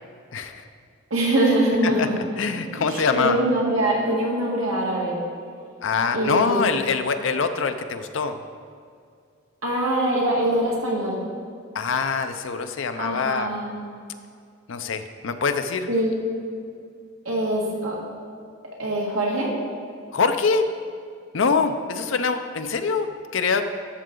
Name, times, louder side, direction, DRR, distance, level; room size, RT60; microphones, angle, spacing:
voice 1, 0.3-0.6 1.8-2.1 2.4-3.4 5.8-8.4 11.7-13.5 14.7-15.9 20.1-20.7 21.3-23.7, left 5 dB, 65° left, 7 dB, 0.5 m, -24 dB
voice 2, 1.1-2.1 2.9-5.2 6.1-6.6 9.6-11.2 13.0-13.8 15.9-16.1 17.3-18.0 18.8-19.5, right 1 dB, 90° right, -2 dB, 2.0 m, -23 dB
12.5 x 6.6 x 3.8 m, 2.3 s
head